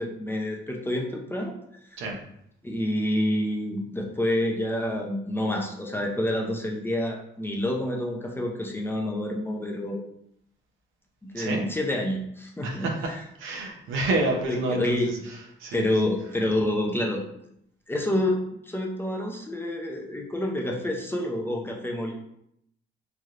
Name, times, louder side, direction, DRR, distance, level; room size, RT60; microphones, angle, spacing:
voice 1, 0.0-1.5 1.9-2.0 2.6-10.0 11.2-13.2 14.3-15.1 15.7-17.2 17.9-22.1, left 1 dB, 10° left, 0 dB, 0.6 m, -28 dB
voice 2, 12.6-15.1 15.6-16.0, right 2 dB, 90° right, 1 dB, 0.7 m, -29 dB
3.2 x 2.7 x 2.5 m, 0.75 s
cardioid pair, 90°, 20 cm